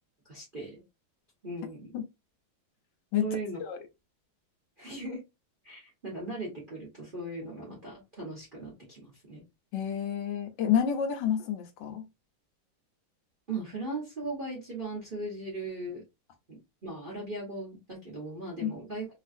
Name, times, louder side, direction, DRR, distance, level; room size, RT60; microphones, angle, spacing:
voice 1, 0.2-0.8 1.4-1.9 3.2-3.6 4.8-5.2 5.6-9.4 13.5-16.0 16.5-19.2, right 2 dB, 35° right, 0.9 m, -38 dB
voice 2, 9.7-12.0 18.6-18.7, left 9 dB, 75° left, 1.3 m, -29 dB
3.2 x 2.3 x 2.5 m
omnidirectional pair, 2.1 m